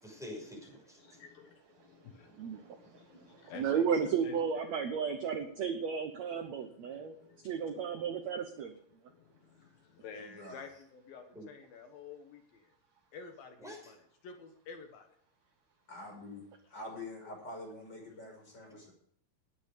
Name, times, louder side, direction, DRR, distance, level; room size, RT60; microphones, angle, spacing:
voice 1, 0.0-1.2 3.1-3.5 11.3-11.5 13.6-13.9, left 1 dB, ahead, 0 dB, 5.8 m, -47 dB
voice 2, 1.0-4.7 6.5-8.0 8.9-12.7 13.1-14.0 14.2-15.1, left 5 dB, 70° left, 5 dB, 3.1 m, -52 dB
voice 3, 2.3-7.2 7.4-8.8, right 7 dB, 70° right, 7 dB, 1.7 m, -34 dB
voice 4, 10.0-10.6 15.9-18.9, left 2 dB, 25° left, 0 dB, 6.4 m, -46 dB
19.5 x 9.4 x 5.1 m, 0.65 s
omnidirectional pair, 4.4 m